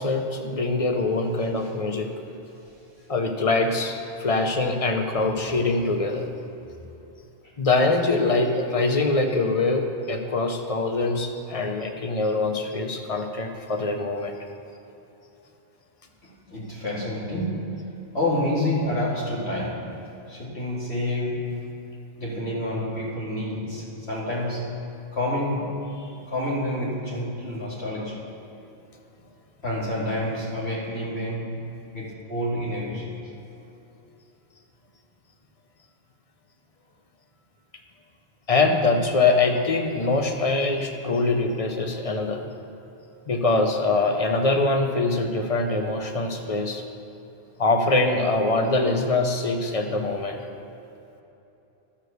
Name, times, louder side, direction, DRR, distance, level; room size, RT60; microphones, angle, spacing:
voice 1, 0.0-2.1 3.1-6.3 7.6-14.3 38.5-42.4 43.3-46.8 47.6-50.4, left 3 dB, 35° left, 4 dB, 0.8 m, -23 dB
voice 2, 16.5-21.7 22.2-28.3 29.6-33.1, left 1 dB, 85° left, -7 dB, 2.9 m, -29 dB
12.5 x 4.8 x 6.6 m, 3.0 s
omnidirectional pair, 1.1 m